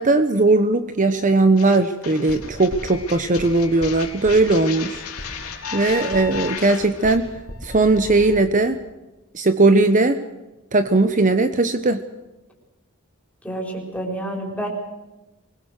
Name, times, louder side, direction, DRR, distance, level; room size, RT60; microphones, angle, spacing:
voice 1, 0.0-5.0 5.7-7.3 7.6-8.8 9.3-10.2 10.7-12.0, right 2 dB, 35° right, 10 dB, 0.9 m, -18 dB
sound 1, 1.6-7.2, left 8 dB, 85° left, 3.7 m, -36 dB
sound 2, 2.3-8.5, left 2 dB, 65° left, 3.9 m, -36 dB
voice 2, 13.4-14.7, right 1 dB, 5° left, 0 dB, 4.8 m, -29 dB
24.5 x 21.0 x 6.5 m, 1.1 s
head